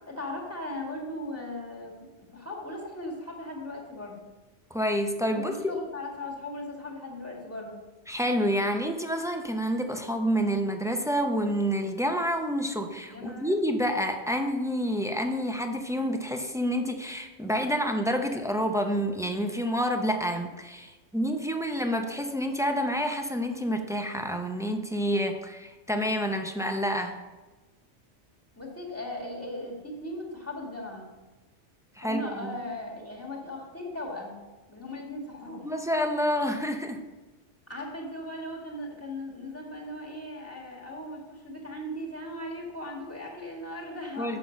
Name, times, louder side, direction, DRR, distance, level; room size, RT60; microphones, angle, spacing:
voice 1, 0.1-1.9 2.3-4.2 5.3-7.8 13.1-13.5 28.6-31.1 32.0-34.4 34.7-35.7 37.7-44.4, left 1 dB, 10° left, -2 dB, 1.8 m, -38 dB
voice 2, 4.7-5.7 8.1-27.2 32.0-32.5 35.6-37.0 44.2-44.4, equal, 5° right, 4 dB, 0.3 m, -28 dB
7.5 x 5.9 x 5.1 m, 1.2 s
omnidirectional pair, 1.2 m